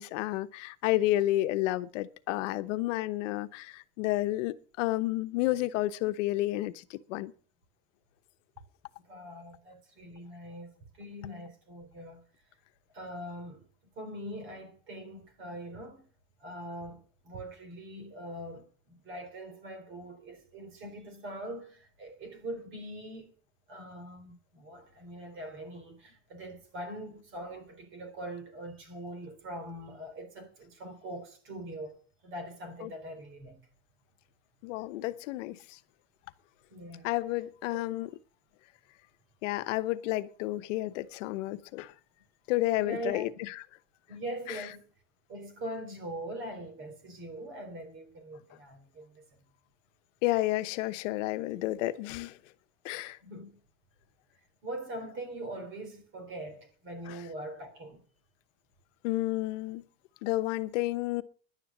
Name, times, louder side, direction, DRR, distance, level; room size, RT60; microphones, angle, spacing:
voice 1, 0.0-7.3 32.8-32.9 34.6-35.8 37.0-38.1 39.4-41.9 42.5-43.5 44.5-44.6 50.2-52.4 52.8-53.2 57.1-57.2 59.0-59.9 60.2-61.2, left 17 dB, 85° left, 1.0 m, -31 dB
voice 2, 9.1-12.2 12.9-13.7 14.0-16.1 16.4-23.3 23.7-33.6 36.7-37.1 37.7-37.8 42.8-43.3 44.1-44.9 45.3-49.2 53.2-53.6 54.6-58.0, right 1 dB, 35° right, 3.8 m, -42 dB
11.0 x 10.0 x 7.2 m
cardioid pair, 165°, 36 cm